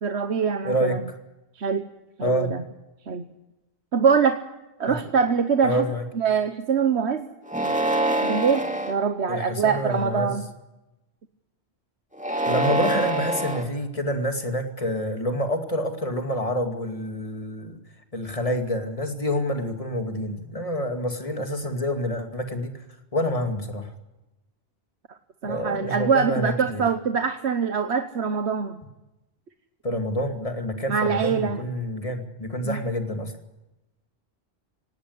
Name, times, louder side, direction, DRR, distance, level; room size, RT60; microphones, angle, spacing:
voice 1, 0.0-1.0 1.6-1.8 2.2-2.6 3.1-3.3 3.9-4.4 4.8-5.8 6.1-7.3 8.2-10.4 25.4-28.8 30.9-31.6 32.6-32.8, right 6 dB, 80° right, 8 dB, 1.4 m, -23 dB
voice 2, 0.6-1.0 2.2-2.5 4.9-5.0 5.6-6.0 9.3-10.4 12.5-17.8 18.1-22.8 23.1-23.9 25.4-26.8 29.8-33.3, equal, 30° left, 6 dB, 2.4 m, -27 dB
sound 1, 7.5-8.9 9.6-10.2 12.1-13.6, right 2 dB, 5° right, 2.5 m, -25 dB
18.5 x 17.5 x 9.5 m, 0.99 s
omnidirectional pair, 1.1 m